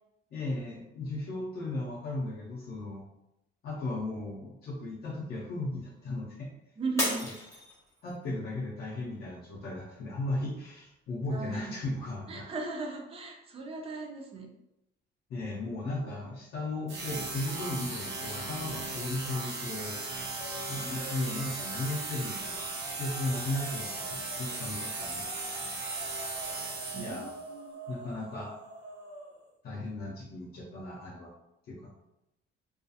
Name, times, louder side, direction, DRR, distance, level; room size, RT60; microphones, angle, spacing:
voice 1, 0.3-3.1 3.6-6.5 8.0-12.5 15.3-20.0 20.7-25.3 26.9-27.4 27.9-28.5 29.6-31.3 31.7-31.9, left 2 dB, 50° left, -4 dB, 0.5 m, -36 dB
voice 2, 6.8-7.2 11.3-11.8 12.3-14.5 26.9-27.8, right 3 dB, 30° right, 1 dB, 0.4 m, -37 dB
Shatter, 7.0-8.3 8.8-9.2 9.8-9.9, equal, 15° left, 0.7 m, -33 dB
sound 1, 16.9-27.4, right 3 dB, 75° right, 0.8 m, -37 dB
sound 2, 18.8-19.4 19.7-21.6 22.3-29.5, right 1 dB, 50° right, 0.8 m, -47 dB
2.3 x 2.3 x 2.6 m, 0.89 s
cardioid pair, 160°, 20 cm